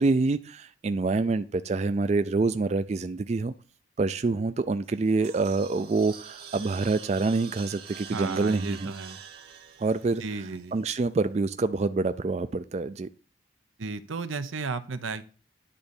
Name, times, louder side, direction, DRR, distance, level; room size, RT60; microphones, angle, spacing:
voice 1, 0.0-3.5 4.0-8.9 9.8-10.2 10.7-13.1, right 3 dB, 35° right, 12 dB, 0.3 m, -26 dB
sound 1, 4.8-11.1, right 7 dB, 50° right, 1.7 m, -46 dB
voice 2, 8.1-9.2 10.2-10.7 13.8-15.2, right 4 dB, 90° right, 12 dB, 0.8 m, -34 dB
10.0 x 3.8 x 7.0 m, 0.36 s
head